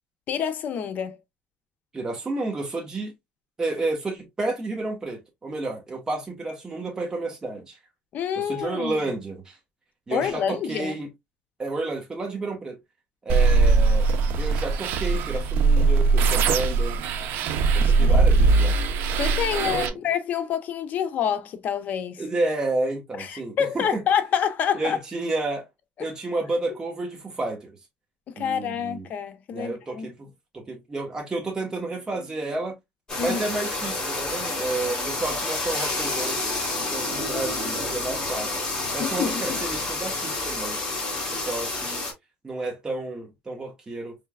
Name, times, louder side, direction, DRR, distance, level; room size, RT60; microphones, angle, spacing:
voice 1, 0.3-1.2 8.1-9.0 10.1-10.9 17.8-18.2 19.2-22.2 23.2-25.0 28.3-30.1 33.2-33.4 39.0-39.6, left 8 dB, 50° left, 0.7 m, -27 dB
voice 2, 1.9-3.1 3.6-7.8 8.4-9.6 10.1-11.1 11.6-12.8 13.2-14.1 14.4-17.0 17.7-18.7 19.6-20.0 22.2-24.0 24.7-25.7 26.0-27.7 28.4-29.1 29.5-32.8 33.2-36.4 36.9-38.5 38.9-40.8 41.3-42.1 42.4-44.2, right 2 dB, 20° right, 1.1 m, -31 dB
sound 1, 13.3-19.9, right 4 dB, 70° right, 0.6 m, -20 dB
sound 2, 33.1-42.1, left 2 dB, 15° left, 2.6 m, -29 dB
4.5 x 3.2 x 2.3 m
cardioid pair, 130°, 4 cm